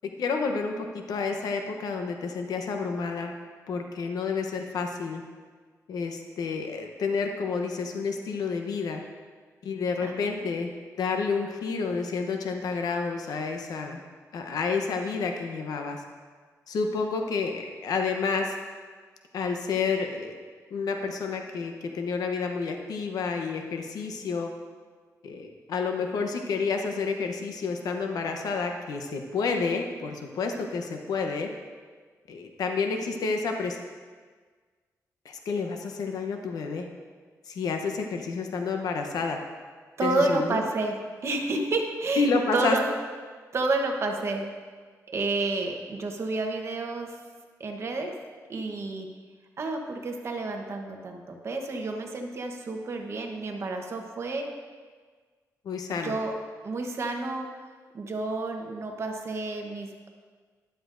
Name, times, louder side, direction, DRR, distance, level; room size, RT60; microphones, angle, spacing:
voice 1, 0.2-3.3 3.7-5.2 5.9-9.0 9.6-10.7 11.0-14.0 14.3-16.0 16.7-18.5 19.3-20.3 20.7-24.5 25.2-31.5 32.3-33.8 35.2-36.9 37.5-39.4 40.0-40.6 42.2-42.8 55.6-56.2, left 4 dB, 85° left, 4 dB, 0.9 m, -29 dB
voice 2, 10.0-10.5 40.0-41.0 41.2-42.9 43.5-44.5 45.1-47.1 47.6-48.1 48.5-49.1 49.6-54.5 56.0-56.4 56.6-57.6 57.9-60.1, right 2 dB, 45° right, 3 dB, 1.0 m, -30 dB
13.0 x 11.5 x 2.6 m, 1.5 s
wide cardioid pair, 130°, 6 cm